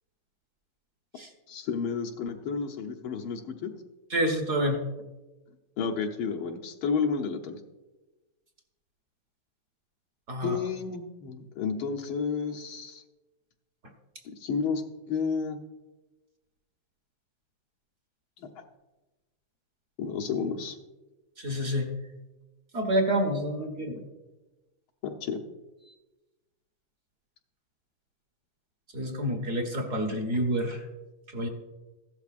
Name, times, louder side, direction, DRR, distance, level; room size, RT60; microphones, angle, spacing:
voice 1, 1.5-3.7 5.8-7.6 10.4-13.0 14.3-14.8 15.1-15.6 20.0-20.8 25.0-25.4, left 5 dB, 75° left, 2 dB, 1.8 m, -31 dB
voice 2, 4.1-4.8 10.3-10.6 21.4-21.9 22.7-24.0 28.9-30.8 31.3-31.5, equal, 40° right, 5 dB, 1.5 m, -28 dB
15.0 x 12.0 x 2.5 m, 1.1 s
omnidirectional pair, 2.3 m